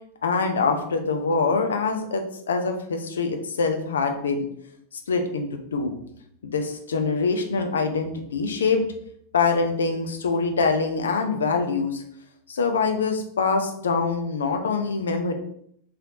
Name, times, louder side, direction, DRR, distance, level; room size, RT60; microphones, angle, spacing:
voice 1, 0.2-2.2 2.5-4.5 5.1-5.9 6.4-8.8 9.3-12.0 12.5-15.3, left 4 dB, 65° left, 5 dB, 0.6 m, -24 dB
3.9 x 3.3 x 2.9 m, 0.69 s
figure-of-eight pair, 90°, 0 cm